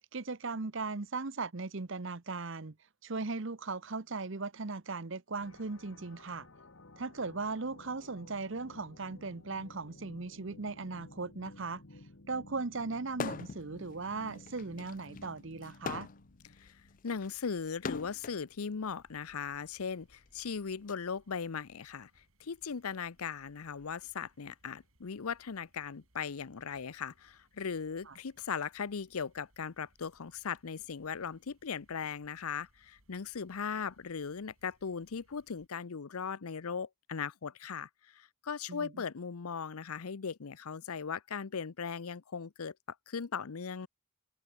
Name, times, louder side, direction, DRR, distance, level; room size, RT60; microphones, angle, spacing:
voice 1, 0.1-2.8 3.0-6.5 7.0-11.8 12.3-16.1 28.1-28.2 38.7-39.0, right 3 dB, 60° right, 0.9 m, -38 dB
sound 1, 5.4-17.1, left 2 dB, 65° left, 1.7 m, -55 dB
sound 2, 13.1-13.7 14.0-18.4 19.3-20.9, left 5 dB, 35° left, 0.4 m, -42 dB
voice 2, 17.0-42.7 43.1-43.9, left 6 dB, 85° left, 0.7 m, -38 dB
sound 3, 18.8-35.7, right 1 dB, 75° right, 5.9 m, -70 dB
open air
head